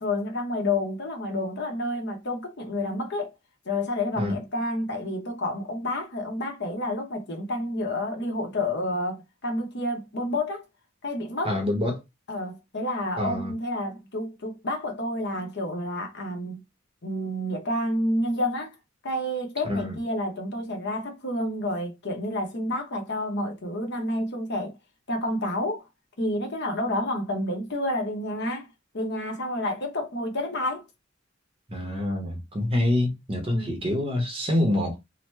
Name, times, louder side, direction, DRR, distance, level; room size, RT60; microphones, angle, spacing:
voice 1, 0.0-3.3 3.6-10.6 11.0-11.6 12.3-16.6 17.0-18.7 19.0-24.7 25.1-25.8 26.2-28.7 28.9-30.8 33.5-33.7, left 1 dB, 60° left, 0.9 m, -29 dB
voice 2, 11.4-12.0 13.2-13.5 19.6-20.0 31.7-35.0, left 1 dB, 25° right, 0.8 m, -26 dB
2.9 x 2.1 x 3.2 m
head